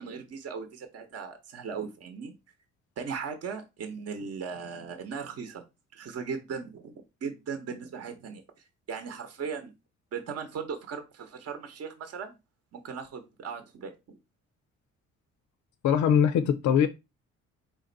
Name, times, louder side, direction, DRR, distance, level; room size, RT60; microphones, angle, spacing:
voice 1, 0.0-2.3 3.0-5.6 5.9-6.9 7.2-9.7 10.1-12.4 12.7-14.2, right 6 dB, 55° right, 0.8 m, -38 dB
voice 2, 15.8-16.9, left 8 dB, 70° left, 0.5 m, -22 dB
4.3 x 2.6 x 3.8 m
cardioid pair, 90°, 30 cm